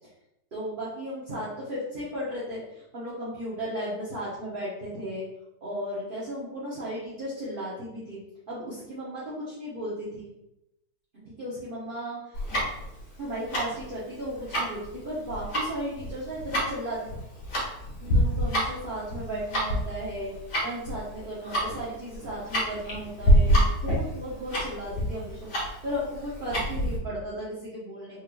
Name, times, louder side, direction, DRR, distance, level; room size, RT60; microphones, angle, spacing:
voice 1, 0.5-5.2 5.6-8.2 8.5-10.3 11.1-12.4 13.2-17.1 18.0-20.3 20.6-25.5 25.8-28.2, equal, 35° right, -9 dB, 1.1 m, -35 dB
Tick-tock, 12.3-27.0, equal, 80° left, 2.0 m, -27 dB
4.5 x 3.3 x 2.5 m, 0.87 s
omnidirectional pair, 1.8 m